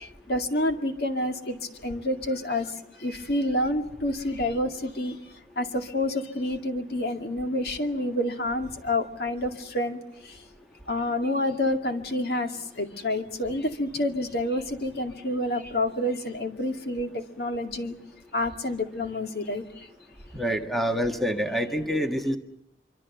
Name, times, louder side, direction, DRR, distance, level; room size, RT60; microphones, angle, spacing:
voice 1, 0.0-1.6 1.8-2.7 3.0-5.2 5.6-10.0 10.9-18.0 18.3-19.6, left 1 dB, 65° left, 5 dB, 2.3 m, -28 dB
voice 2, 20.3-22.4, equal, ahead, 4 dB, 1.5 m, -26 dB
25.5 x 25.0 x 6.9 m, 0.82 s
head